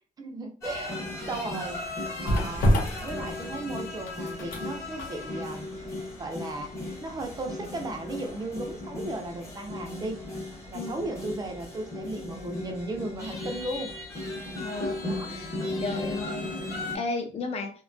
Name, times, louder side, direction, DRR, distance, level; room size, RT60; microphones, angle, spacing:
voice 1, 0.2-1.0 1.3-2.7 3.0-5.7 6.2-6.7 7.0-10.2 10.7-13.9 15.1-15.3, right 2 dB, 25° right, 3 dB, 0.4 m, -36 dB
sound 1, 0.6-17.0, left 2 dB, 20° left, 0.8 m, -36 dB
sound 2, 1.0-9.0 9.3-9.5, equal, 85° left, 0.8 m, -31 dB
voice 2, 14.6-15.5 15.8-16.5 16.9-17.7, left 3 dB, 45° left, 5 dB, 0.5 m, -33 dB
2.7 x 2.2 x 2.5 m, 0.41 s
wide cardioid pair, 175°, 15 cm